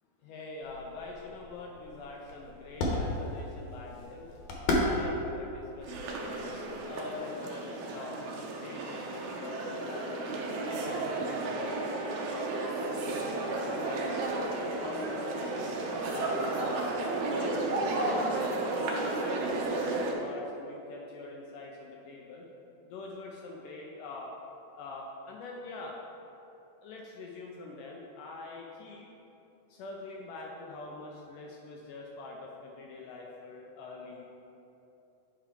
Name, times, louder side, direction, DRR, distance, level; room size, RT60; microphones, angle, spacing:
voice 1, 0.2-4.3 4.8-8.2 8.6-10.4 10.8-12.5 12.7-14.3 14.8-16.9 17.3-17.6 17.8-22.5 22.8-24.3 24.8-26.0 26.8-29.1 29.7-34.2, left 3 dB, 85° left, -2 dB, 1.9 m, -44 dB
sound 1, 0.6-6.9, left 1 dB, 65° left, 2.2 m, -35 dB
sound 2, 5.8-20.1, right 2 dB, 85° right, 1.6 m, -33 dB
sound 3, 13.0-20.2, right 1 dB, 45° right, 1.3 m, -54 dB
9.9 x 4.9 x 3.6 m, 2.9 s
omnidirectional pair, 4.4 m